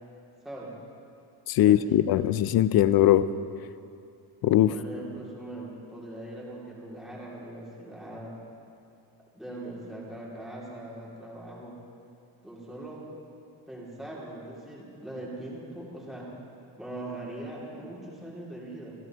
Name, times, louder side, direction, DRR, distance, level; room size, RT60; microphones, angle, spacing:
voice 1, 0.4-0.7 1.6-2.0 4.7-8.3 9.3-11.8 12.4-13.0 13.7-16.3 16.8-18.9, right 1 dB, ahead, -6 dB, 2.6 m, -41 dB
voice 2, 1.5-3.2 4.4-4.7, left 12 dB, 55° left, 15 dB, 0.5 m, -20 dB
27.0 x 11.0 x 3.0 m, 2.5 s
cardioid pair, 145°, 46 cm